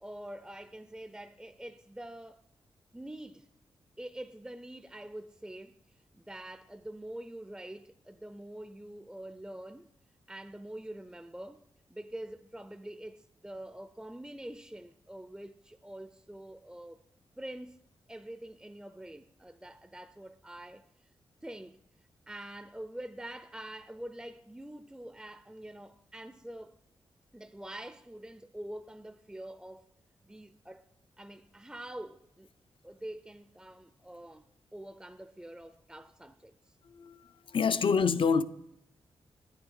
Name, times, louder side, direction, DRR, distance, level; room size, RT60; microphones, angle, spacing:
voice 1, 0.0-2.4 2.9-3.5 4.0-5.8 6.1-9.9 10.3-11.6 11.9-17.0 17.4-17.8 18.1-20.9 21.4-21.8 22.3-26.8 27.3-29.9 30.2-30.9 31.2-32.5 32.8-34.4 34.7-36.7, right 1 dB, 10° right, 0.5 m, -45 dB
voice 2, 36.8-38.4, left 5 dB, 55° left, 0.5 m, -27 dB
9.8 x 9.0 x 3.7 m
cardioid pair, 50°, 10 cm